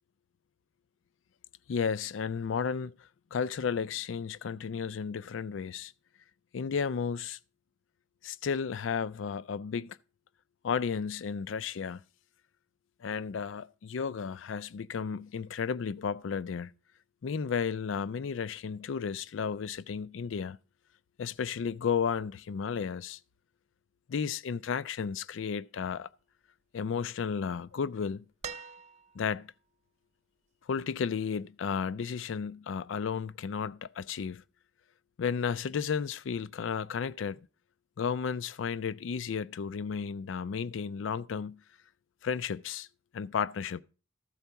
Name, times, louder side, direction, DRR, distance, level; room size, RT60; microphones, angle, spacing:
voice 1, 1.7-2.9 3.3-5.9 6.5-7.4 8.2-10.0 10.6-12.0 13.0-16.7 17.2-20.6 21.2-23.2 24.1-26.1 26.7-28.2 29.2-29.5 30.7-34.4 35.2-37.4 38.0-41.6 42.2-42.9 43.1-43.8, left 6 dB, 85° left, 0.4 m, -33 dB
sound 1, 28.4-29.4 31.0-31.1, right 7 dB, 35° right, 0.5 m, -43 dB
13.5 x 4.5 x 6.9 m
head